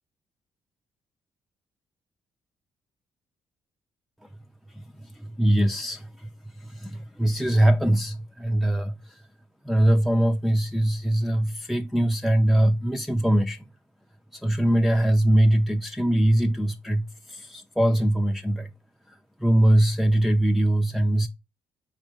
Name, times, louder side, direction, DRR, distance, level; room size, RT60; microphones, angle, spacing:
voice 1, 4.7-6.3 6.6-9.2 9.6-13.6 14.3-18.7 19.1-21.3, right 1 dB, ahead, 0.4 m, -22 dB
4.2 x 2.5 x 4.5 m
hypercardioid pair, 50°, 10 cm